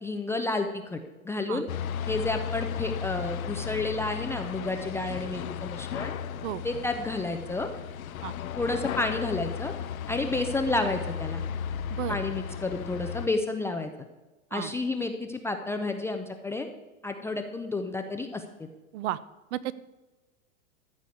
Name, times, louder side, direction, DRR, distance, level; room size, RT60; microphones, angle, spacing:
voice 1, 0.0-1.7 2.1-6.1 6.6-7.7 8.6-9.7 10.1-11.4 12.1-13.9 14.5-16.7 17.0-18.4, left 2 dB, 5° left, 5 dB, 0.4 m, -30 dB
voice 2, 1.5-1.6 6.4-6.6 8.2-8.3 11.9-12.2 14.5-14.7 18.9-19.2 19.5-19.7, right 14 dB, 55° right, 16 dB, 0.8 m, -32 dB
sound 1, 1.7-13.3, left 8 dB, 85° left, 0.8 m, -35 dB
13.5 x 4.8 x 8.2 m, 1.1 s
hypercardioid pair, 130°, 41 cm